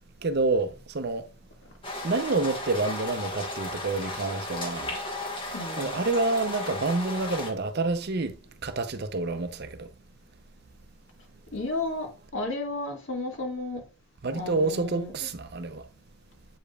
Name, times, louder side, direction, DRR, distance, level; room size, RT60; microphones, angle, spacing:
voice 1, 0.2-1.3 2.0-5.0 5.8-8.4 8.6-9.9 14.2-15.8, right 3 dB, 50° right, 0.6 m, -28 dB
sound 1, 1.8-7.5, left 2 dB, 25° left, 1.3 m, -35 dB
voice 2, 5.5-5.9 11.5-13.8 14.3-15.1, left 2 dB, 60° left, 2.0 m, -33 dB
7.9 x 5.1 x 2.3 m
head